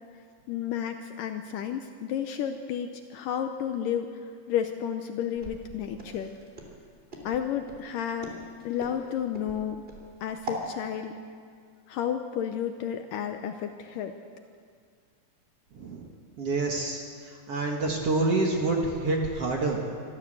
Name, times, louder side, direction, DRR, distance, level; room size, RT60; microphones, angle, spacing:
voice 1, 0.5-4.1 4.5-6.3 7.3-8.3 8.7-9.8 10.2-11.1 11.9-14.1, left 9 dB, 75° left, 6 dB, 2.1 m, -31 dB
Walk footsteps, 5.4-10.7, right 2 dB, 15° right, 2.8 m, -41 dB
voice 2, 15.7-16.1 16.4-19.8, right 2 dB, 50° right, 0 dB, 2.1 m, -27 dB
24.5 x 14.0 x 7.8 m, 2.1 s
omnidirectional pair, 4.5 m